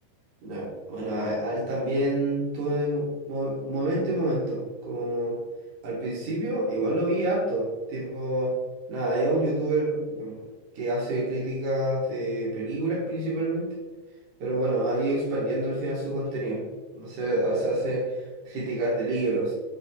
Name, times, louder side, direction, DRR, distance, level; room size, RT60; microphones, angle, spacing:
voice 1, 0.4-5.4 5.8-8.5 8.9-10.3 10.7-13.7 14.4-16.7 16.9-19.5, right 1 dB, 45° right, -6 dB, 3.1 m, -27 dB
10.5 x 4.7 x 3.1 m, 1.3 s
omnidirectional pair, 4.1 m